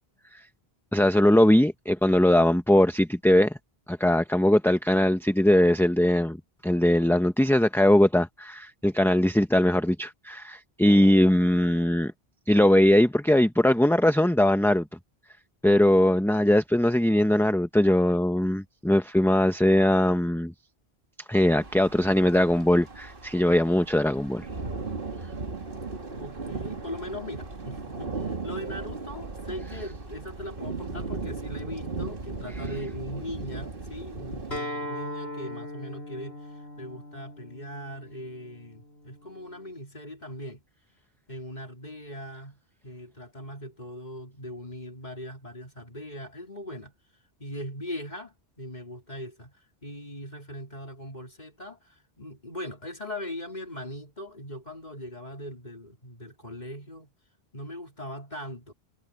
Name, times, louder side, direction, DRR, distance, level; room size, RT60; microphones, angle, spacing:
voice 1, 0.9-3.6 3.9-6.4 6.6-12.1 12.5-14.9 15.6-20.5 21.3-24.5, left 1 dB, 5° left, 0.7 m, -21 dB
sound 1, 21.4-34.6, right 3 dB, 55° right, 2.3 m, -37 dB
voice 2, 26.2-40.6 41.3-46.9 47.4-57.1 57.5-58.7, left 1 dB, 45° left, 3.6 m, -40 dB
Acoustic guitar, 34.5-39.7, left 1 dB, 80° left, 7.4 m, -39 dB
omnidirectional pair, 1.1 m